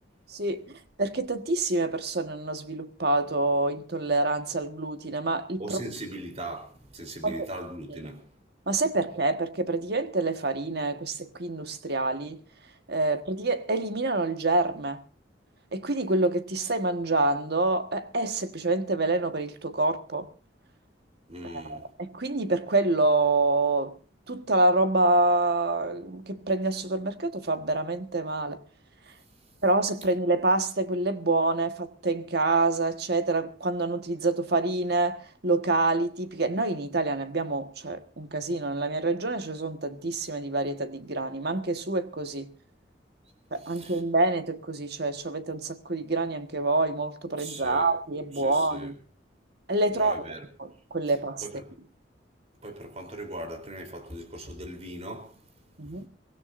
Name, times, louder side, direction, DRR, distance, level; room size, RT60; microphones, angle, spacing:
voice 1, 0.3-5.8 7.2-7.5 8.7-12.4 12.9-15.0 15.7-20.3 21.4-24.0 24.3-28.6 29.6-42.5 43.5-48.9 49.7-50.1 50.6-51.4 55.8-56.1, right 2 dB, 60° right, 1.5 m, -27 dB
voice 2, 5.6-8.2 21.3-21.9 29.4-29.6 43.5-44.0 47.4-47.9 48.3-49.0 49.9-50.4 51.4-51.7 52.6-56.1, right 1 dB, 35° right, 3.7 m, -40 dB
23.5 x 17.0 x 2.6 m
head